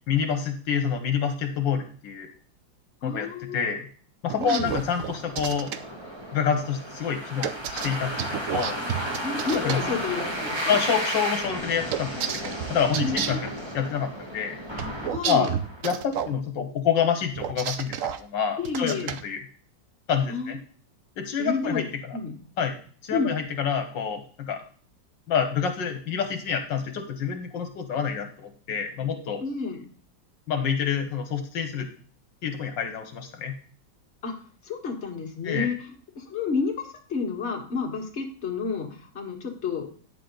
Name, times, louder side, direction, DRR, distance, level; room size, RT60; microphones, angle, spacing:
voice 1, 0.1-2.3 3.0-3.8 4.2-5.7 6.3-7.5 7.8-8.8 9.5-9.8 10.7-14.5 15.2-15.5 15.8-19.0 19.2-19.4 20.1-20.6 21.2-22.2 22.6-22.8 23.0-24.6 25.3-29.4 30.5-31.9 32.4-33.5 35.4-35.7, left 7 dB, 80° left, 5 dB, 1.7 m, -27 dB
voice 2, 3.0-3.7 4.4-4.8 9.2-10.8 13.0-13.4 15.1-15.5 18.6-19.1 20.3-20.6 21.4-21.8 22.1-22.3 23.1-23.3 29.4-29.8 34.2-34.3 34.6-35.8 36.2-39.9, left 5 dB, 35° left, 1 dB, 1.9 m, -30 dB
sound 1, 4.3-5.8 7.4-9.8 11.9-13.5 14.8-16.3 17.3-18.2 18.6-19.2, right 9 dB, 65° right, 0.8 m, -30 dB
sound 2, 4.6-15.8, equal, 15° right, 1.5 m, -33 dB
9.5 x 6.9 x 3.8 m, 0.43 s
omnidirectional pair, 2.0 m